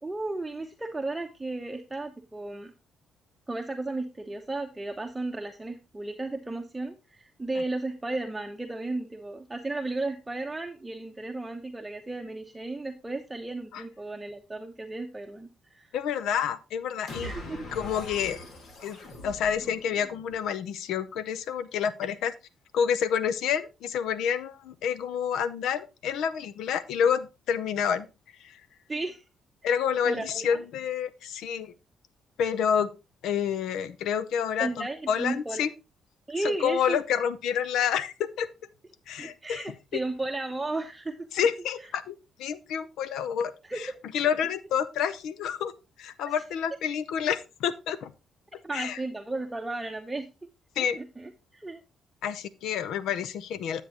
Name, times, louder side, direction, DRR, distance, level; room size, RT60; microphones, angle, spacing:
voice 1, 0.0-2.7 3.5-15.9 17.2-17.7 22.1-22.2 28.9-29.2 30.1-30.5 34.6-35.7 36.3-37.0 39.2-41.3 41.8-41.9 43.6-44.0 46.3-46.4 48.6-50.3 50.8-51.8, right 2 dB, 15° right, 4 dB, 0.9 m, -34 dB
voice 2, 15.9-17.3 17.7-18.4 18.8-19.0 19.2-22.3 22.7-28.1 28.4-28.6 29.6-31.7 32.4-32.9 33.2-35.7 36.4-38.5 39.1-39.7 41.3-43.9 44.1-45.7 46.0-48.1 48.7-49.0 50.8-51.0 52.2-53.8, left 8 dB, 80° left, 15 dB, 0.7 m, -28 dB
sound 1, 17.1-20.4, left 1 dB, 60° left, 2.1 m, -42 dB
10.0 x 8.1 x 2.9 m, 0.27 s
cardioid pair, 90°, 0 cm